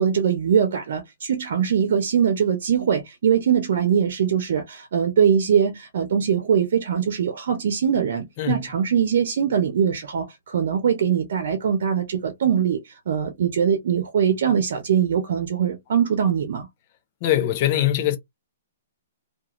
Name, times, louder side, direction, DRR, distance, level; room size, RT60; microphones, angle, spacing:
voice 1, 0.0-16.7, right 8 dB, 65° right, 0.7 m, -22 dB
voice 2, 17.2-18.2, left 12 dB, 40° left, 0.7 m, -21 dB
2.4 x 2.4 x 3.0 m
hypercardioid pair, 145°, 0 cm